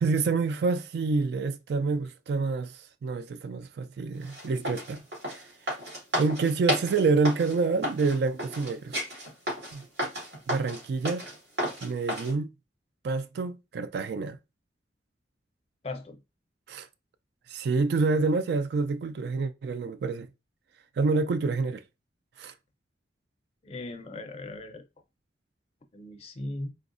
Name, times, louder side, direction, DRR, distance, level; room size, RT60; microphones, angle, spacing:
voice 1, 0.0-5.0 5.3-5.4 6.1-9.0 9.7-9.9 10.5-11.2 11.8-12.5 13.0-14.4 16.7-16.9 17.5-20.3 21.0-21.8 22.4-22.5, right 4 dB, 60° right, 0.3 m, -27 dB
sound 1, 4.2-12.3, equal, 80° right, 1.9 m, -33 dB
voice 2, 15.8-16.2 23.6-24.9 25.9-26.7, left 2 dB, 35° left, 0.4 m, -38 dB
3.6 x 2.0 x 2.5 m
head